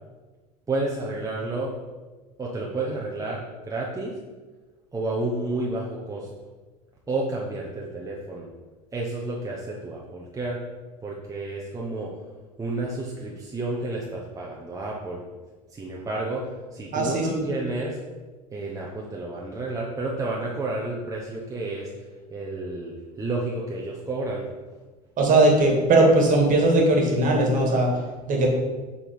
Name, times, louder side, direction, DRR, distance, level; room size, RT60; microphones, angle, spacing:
voice 1, 0.7-1.7 2.4-4.1 4.9-6.3 7.1-8.5 8.9-10.6 11.0-12.1 12.6-15.2 15.7-18.0 18.5-21.9 22.3-24.4, right 2 dB, 15° right, -3 dB, 1.1 m, -30 dB
voice 2, 16.9-17.4 25.2-27.9 28.3-28.5, right 2 dB, 40° right, 1 dB, 2.2 m, -19 dB
7.2 x 4.3 x 5.4 m, 1.3 s
hypercardioid pair, 90°, 21 cm